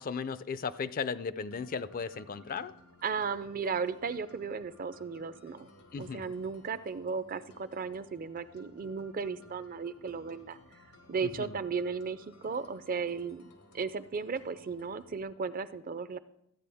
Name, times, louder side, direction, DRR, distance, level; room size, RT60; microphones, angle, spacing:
voice 1, 0.0-2.7 5.9-6.2 11.2-11.6, left 5 dB, 40° left, 15 dB, 0.4 m, -36 dB
sound 1, 1.5-15.2, left 1 dB, 90° left, 1.4 m, -58 dB
voice 2, 3.0-5.7 6.0-10.6 11.1-13.4 13.7-16.2, right 5 dB, 40° right, 14 dB, 0.4 m, -35 dB
13.5 x 9.1 x 3.5 m, 0.77 s
head